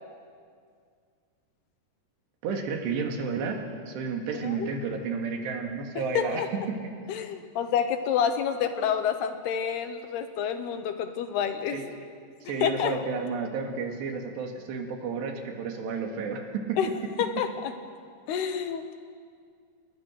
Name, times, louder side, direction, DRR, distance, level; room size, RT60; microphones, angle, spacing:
voice 1, 2.4-6.5 11.7-11.9 12.4-16.8, right 5 dB, 75° right, 3 dB, 4.2 m, -32 dB
voice 2, 6.1-6.5 7.1-11.8 12.6-13.0 16.8-16.9 17.2-17.7 18.3-19.0, left 8 dB, 75° left, 8 dB, 3.0 m, -28 dB
29.5 x 20.5 x 6.5 m, 2.1 s
omnidirectional pair, 5.0 m